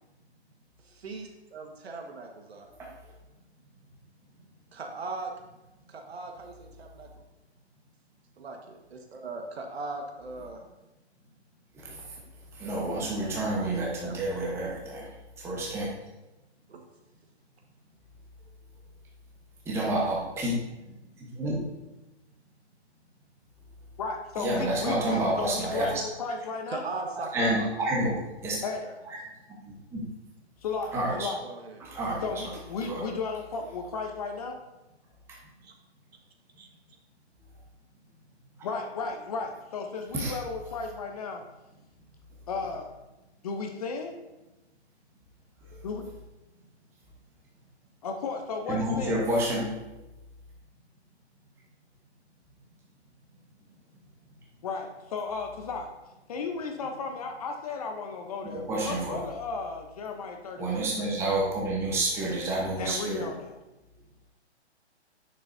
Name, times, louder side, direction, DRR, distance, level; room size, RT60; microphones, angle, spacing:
voice 1, 0.8-2.7 4.7-5.3 5.9-7.1 8.4-10.6 12.9-14.3 16.7-16.8 25.8-25.9 26.7-27.7 28.8-28.9 31.4-31.8 35.6-35.7 36.6-36.7, right 3 dB, 65° right, 3 dB, 1.5 m, -39 dB
voice 2, 12.6-15.1 15.4-15.9 19.7-20.6 21.2-21.6 24.4-25.9 27.3-28.2 28.4-28.6 29.9-30.0 30.9-31.3 31.8-32.2 32.8-33.0 40.1-40.3 45.7-45.8 48.7-49.6 58.5-59.2 60.6-63.2, right 1 dB, 5° right, -3 dB, 1.1 m, -29 dB
voice 3, 24.0-26.8 28.6-28.9 30.6-31.4 32.2-34.6 38.6-41.4 42.5-42.9 43.4-44.2 45.8-46.1 48.0-49.2 54.6-55.9 56.3-61.2 62.8-63.6, left 4 dB, 35° left, 4 dB, 0.8 m, -34 dB
9.4 x 6.7 x 2.7 m, 1.0 s
hypercardioid pair, 155°, 34 cm